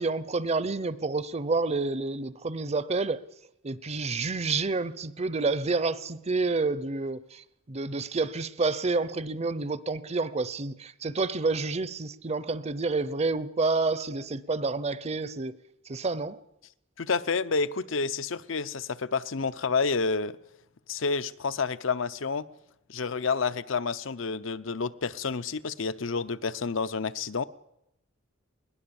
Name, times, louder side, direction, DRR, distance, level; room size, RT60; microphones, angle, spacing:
voice 1, 0.0-3.2 3.6-15.6 15.8-16.4, right 3 dB, 30° right, 0.7 m, -29 dB
voice 2, 17.0-20.4 20.9-22.5 22.9-27.4, left 4 dB, 70° left, 0.8 m, -29 dB
21.0 x 19.0 x 7.1 m
head